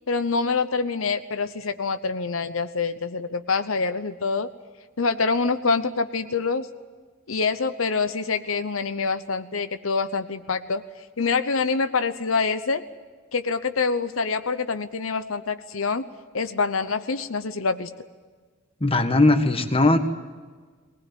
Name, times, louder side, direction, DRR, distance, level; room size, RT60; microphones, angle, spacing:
voice 1, 0.1-4.5 5.0-6.7 7.3-10.8 11.2-12.8 13.3-16.0 16.3-17.9, left 4 dB, 85° left, 10 dB, 0.9 m, -25 dB
voice 2, 18.8-20.0, left 2 dB, 25° left, 7 dB, 1.5 m, -19 dB
20.5 x 19.5 x 9.4 m, 1.5 s
head